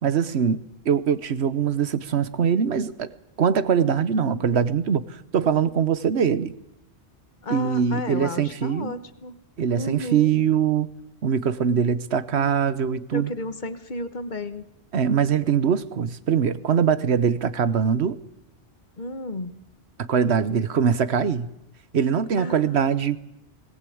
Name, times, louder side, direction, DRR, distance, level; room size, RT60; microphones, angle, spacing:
voice 1, 0.0-0.6 0.8-3.1 3.4-6.5 7.5-8.9 9.6-10.9 11.2-13.3 14.9-18.2 20.0-21.5 21.9-23.2, right 7 dB, 75° right, 15 dB, 1.2 m, -22 dB
voice 2, 3.8-4.5 7.4-9.4 9.8-10.3 12.3-12.7 13.1-14.6 19.0-19.5 22.4-23.2, left 2 dB, 45° left, 11 dB, 1.3 m, -33 dB
20.0 x 18.5 x 8.6 m, 0.88 s
omnidirectional pair, 1.1 m